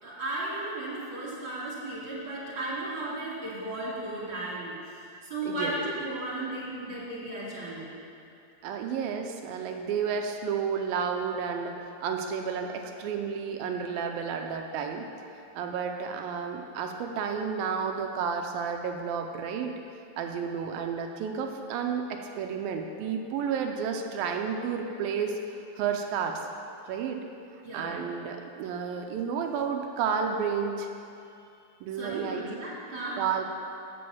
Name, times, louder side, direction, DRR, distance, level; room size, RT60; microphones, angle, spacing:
voice 1, 0.0-4.8 5.2-8.0 27.6-28.0 31.2-31.4 31.9-33.2, right 2 dB, 35° right, -7 dB, 2.7 m, -35 dB
voice 2, 5.5-5.8 8.6-11.7 12.0-15.1 15.6-19.7 20.2-25.4 25.8-26.4 26.9-27.2 27.7-30.9 31.8-32.6 33.1-33.4, right 6 dB, 80° right, 4 dB, 2.3 m, -31 dB
8.6 x 7.7 x 7.1 m, 2.6 s
omnidirectional pair, 4.4 m